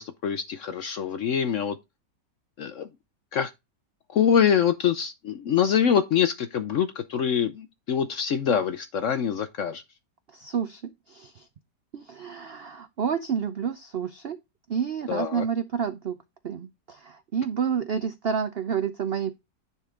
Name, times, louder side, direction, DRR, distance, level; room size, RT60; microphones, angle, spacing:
voice 1, 0.0-1.8 2.6-2.9 3.3-3.5 4.1-9.8 15.1-15.4, left 8 dB, 65° left, 0.8 m, -24 dB
voice 2, 10.3-10.8 11.1-11.5 11.9-14.4 14.7-16.2 16.4-19.3, right 7 dB, 75° right, 0.5 m, -29 dB
10.0 x 4.3 x 3.7 m
omnidirectional pair, 1.9 m